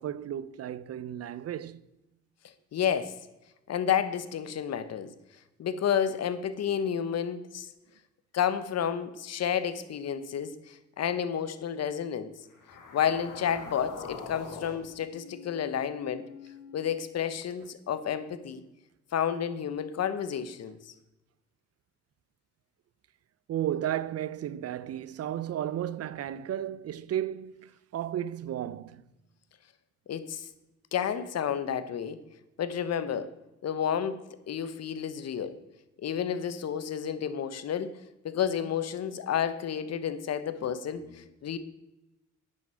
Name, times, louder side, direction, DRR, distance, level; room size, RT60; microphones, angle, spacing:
voice 1, 0.0-1.8 23.5-29.0, right 11 dB, 55° right, 0.6 m, -34 dB
voice 2, 2.7-3.1 3.7-5.1 5.6-7.7 8.3-12.3 12.9-16.3 16.7-18.6 19.1-20.9 30.1-30.5 30.9-32.2 32.6-33.3 33.6-35.6 36.0-37.9 38.2-41.6, left 8 dB, 55° left, 1.1 m, -31 dB
sound 1, 12.5-16.9, left 5 dB, 90° left, 1.8 m, -45 dB
9.4 x 7.3 x 6.3 m
cardioid pair, 90°, 30 cm